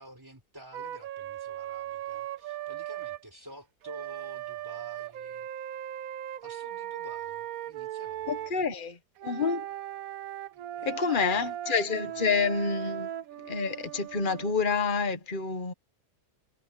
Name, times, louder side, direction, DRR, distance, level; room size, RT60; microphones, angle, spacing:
voice 1, 0.0-5.5 6.4-8.5 10.5-11.6 12.0-12.3, right 1 dB, 15° right, 4.7 m, -50 dB
Wind instrument woodwind instrument, 0.7-3.2 3.8-8.5 9.2-14.5, right 12 dB, 70° right, 1.1 m, -38 dB
voice 2, 8.3-9.0 9.2-9.7 10.8-13.1 13.4-15.7, left 5 dB, 35° left, 1.5 m, -28 dB
omnidirectional pair, 1.7 m